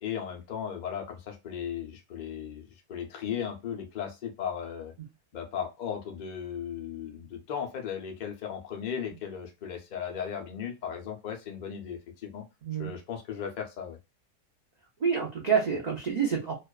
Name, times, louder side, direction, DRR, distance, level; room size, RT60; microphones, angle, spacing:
voice 1, 0.0-4.9 5.3-12.4 12.8-14.0, left 8 dB, 75° left, 3 dB, 0.4 m, -36 dB
voice 2, 12.6-12.9 15.0-16.5, right 6 dB, 85° right, -2 dB, 0.3 m, -27 dB
2.4 x 2.3 x 2.2 m, 0.25 s
omnidirectional pair, 1.6 m